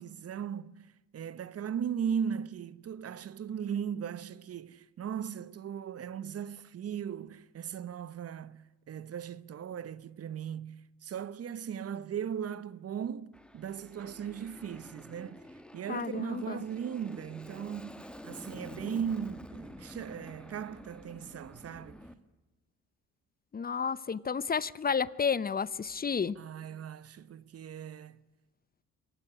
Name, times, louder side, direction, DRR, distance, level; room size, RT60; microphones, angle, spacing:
voice 1, 0.0-15.5 15.7-22.1 26.4-28.2, right 8 dB, 50° right, 1.0 m, -38 dB
Aircraft, 13.3-22.1, left 1 dB, 5° left, 1.8 m, -49 dB
voice 2, 15.9-16.6 23.5-26.4, left 6 dB, 30° left, 0.7 m, -31 dB
24.0 x 18.5 x 9.9 m
cardioid pair, 90°, 30 cm